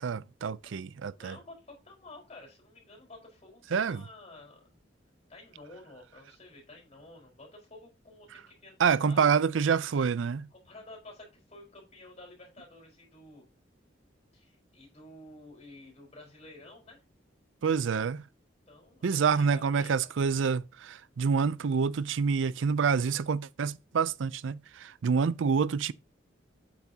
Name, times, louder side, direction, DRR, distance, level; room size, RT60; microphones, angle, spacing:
voice 1, 0.0-1.4 3.7-4.0 8.8-10.5 17.6-18.2 19.0-25.9, right 6 dB, 85° right, 0.4 m, -27 dB
voice 2, 1.1-4.8 5.3-9.4 10.5-13.4 14.3-17.0 18.7-20.1, left 2 dB, 35° left, 4.5 m, -51 dB
8.5 x 8.2 x 2.8 m
head